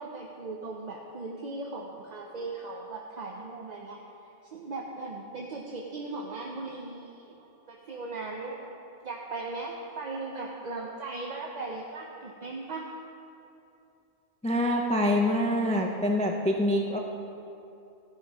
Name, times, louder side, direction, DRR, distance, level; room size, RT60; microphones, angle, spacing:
voice 1, 0.0-4.0 4.5-8.7 9.0-12.8, right 3 dB, 45° right, 0 dB, 0.6 m, -38 dB
voice 2, 14.4-17.0, left 1 dB, 10° left, 2 dB, 0.3 m, -25 dB
13.5 x 5.7 x 4.7 m, 2.7 s
omnidirectional pair, 1.2 m